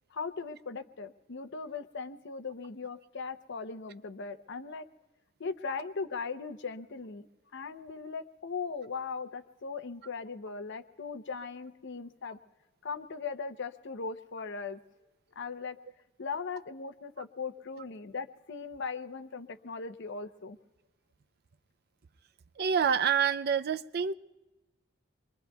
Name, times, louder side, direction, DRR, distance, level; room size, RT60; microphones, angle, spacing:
voice 1, 0.1-4.9 5.4-7.3 7.5-12.4 12.8-14.8 15.4-15.8 16.2-20.6, left 5 dB, 60° left, 0.7 m, -39 dB
voice 2, 22.6-24.1, right 7 dB, 50° right, 0.5 m, -27 dB
26.5 x 22.5 x 2.3 m
head